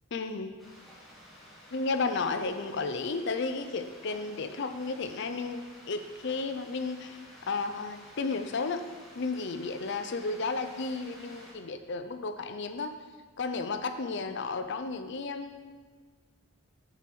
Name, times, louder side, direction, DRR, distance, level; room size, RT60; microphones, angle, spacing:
voice 1, 0.1-0.6 1.7-7.2 7.5-8.8 9.1-13.0 13.4-15.7, left 4 dB, 55° left, 9 dB, 0.5 m, -33 dB
sound 1, 0.6-11.5, equal, ahead, 1.6 m, -52 dB
6.7 x 4.7 x 6.0 m, 1.5 s
head